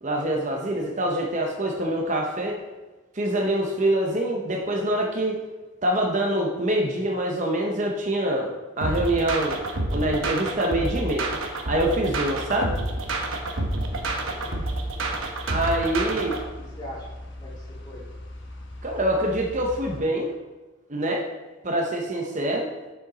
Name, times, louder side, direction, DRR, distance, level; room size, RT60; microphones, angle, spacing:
voice 1, 0.0-2.6 3.1-5.4 5.8-8.5 8.8-9.6 9.9-11.3 11.6-12.7 15.5-16.3 18.8-20.3 20.9-21.3 21.6-22.7, right 1 dB, 35° right, 0 dB, 0.8 m, -25 dB
sound 1, 8.8-16.4, right 2 dB, 70° right, 1.1 m, -28 dB
sound 2, 12.0-20.0, left 1 dB, 55° left, 1.2 m, -40 dB
voice 2, 13.9-14.6 16.1-17.1 17.4-18.0, equal, 20° left, -6 dB, 2.3 m, -43 dB
6.7 x 6.5 x 4.0 m, 1.2 s
head